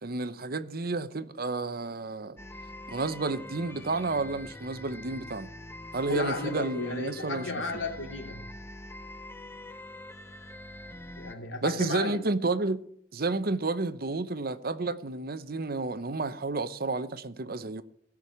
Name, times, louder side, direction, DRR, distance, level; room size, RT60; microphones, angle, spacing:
voice 1, 0.0-2.4 2.9-5.5 5.9-7.4 11.6-12.8 13.1-17.8, right 3 dB, 55° right, 0.9 m, -31 dB
sound 1, 2.4-11.4, left 1 dB, 15° left, 0.9 m, -44 dB
voice 2, 6.1-8.4 11.2-12.2, left 3 dB, 90° left, 3.2 m, -34 dB
17.5 x 6.3 x 8.4 m
head